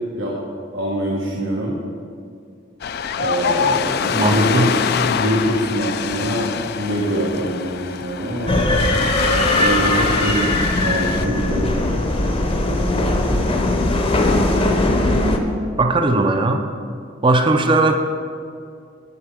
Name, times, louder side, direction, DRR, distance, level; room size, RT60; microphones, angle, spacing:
voice 1, 0.7-1.8 3.2-4.7 5.1-8.6 9.6-11.7 16.1-16.2, right 1 dB, 85° right, -4 dB, 1.4 m, -24 dB
Ocean, 2.8-11.3, left 6 dB, 55° left, 0.4 m, -24 dB
voice 2, 4.1-4.7 15.8-16.6 17.2-18.0, right 2 dB, 25° right, 5 dB, 0.5 m, -17 dB
sound 1, 8.5-15.4, left 1 dB, 30° left, 0.7 m, -19 dB
8.0 x 5.7 x 7.3 m, 2.3 s
head